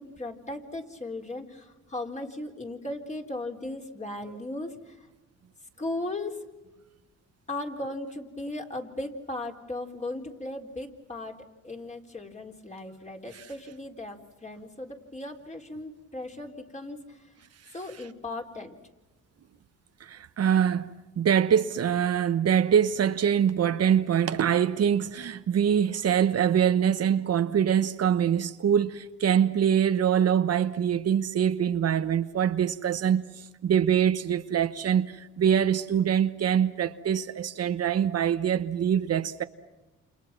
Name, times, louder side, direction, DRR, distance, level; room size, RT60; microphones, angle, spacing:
voice 1, 0.0-5.0 5.8-6.4 7.5-11.4 11.6-17.2 17.7-18.7, left 2 dB, 25° left, 4.0 m, -37 dB
voice 2, 20.0-39.4, right 8 dB, 55° right, 1.1 m, -24 dB
29.5 x 28.5 x 6.0 m
cardioid pair, 90°, 30 cm